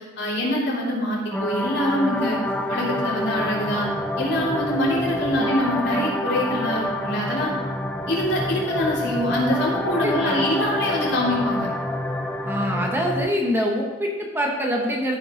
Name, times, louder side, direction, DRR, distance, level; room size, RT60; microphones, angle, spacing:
voice 1, 0.2-2.4 2.7-3.9 4.2-7.5 8.1-11.7, equal, 60° left, -5 dB, 3.4 m, -24 dB
sound 1, 1.3-13.3, left 1 dB, 5° left, 0.6 m, -27 dB
voice 2, 10.0-10.4 12.4-15.2, equal, 10° right, -1 dB, 1.2 m, -25 dB
13.5 x 5.7 x 5.2 m, 1.3 s
head